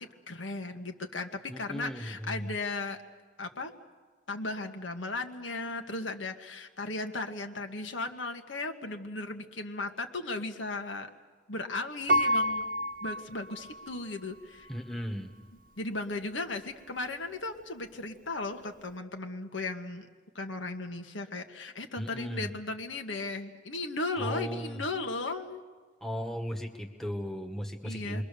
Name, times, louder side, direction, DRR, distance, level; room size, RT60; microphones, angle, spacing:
voice 1, 0.3-3.0 3.4-3.7 4.3-11.1 11.5-12.7 13.0-14.7 15.8-20.1 20.3-25.6 27.8-28.2, left 2 dB, 80° left, 5 dB, 1.6 m, -36 dB
voice 2, 1.5-2.5 14.7-15.3 22.0-22.5 24.2-24.8 26.0-28.2, equal, ahead, 3 dB, 1.4 m, -36 dB
Piano, 12.1-14.1 14.6-14.7, equal, 45° right, 0.9 m, -29 dB
28.5 x 22.0 x 6.9 m, 1.4 s
head